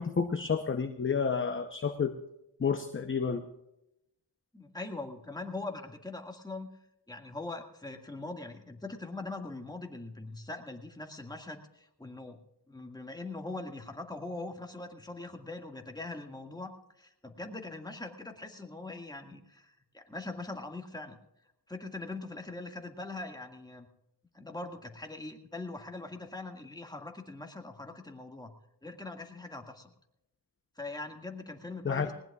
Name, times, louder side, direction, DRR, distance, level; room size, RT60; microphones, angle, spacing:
voice 1, 0.0-2.1 2.6-3.4 31.8-32.1, left 6 dB, 30° left, 7 dB, 0.8 m, -30 dB
voice 2, 4.5-6.7 7.1-12.4 12.7-21.2 21.7-23.9 24.3-28.5 28.8-29.9 30.8-32.1, left 2 dB, 10° left, 2 dB, 1.9 m, -42 dB
20.0 x 19.0 x 2.4 m, 0.86 s
cardioid pair, 85°, 41 cm